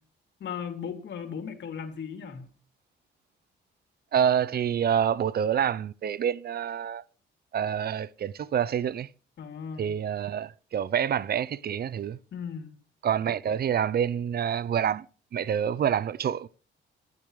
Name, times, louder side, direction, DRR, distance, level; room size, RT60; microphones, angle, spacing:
voice 1, 0.4-2.5 9.4-9.9 12.3-12.7, left 7 dB, 65° left, 3.2 m, -37 dB
voice 2, 4.1-7.0 7.5-9.1 9.8-12.2 13.0-15.0 15.3-16.5, right 8 dB, 50° right, 0.6 m, -27 dB
27.0 x 12.5 x 3.3 m
cardioid pair, 90°, 20 cm